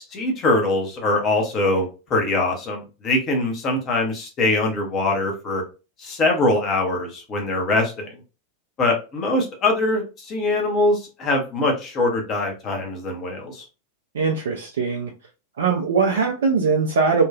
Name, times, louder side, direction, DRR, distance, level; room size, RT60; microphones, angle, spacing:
voice 1, 0.1-5.6 6.0-8.1 8.8-13.6, left 2 dB, 30° left, 0.8 m, -23 dB
voice 2, 14.1-15.1 15.6-17.2, right 5 dB, 60° right, 0.4 m, -21 dB
2.8 x 2.3 x 2.2 m
figure-of-eight pair, 90°, 0 cm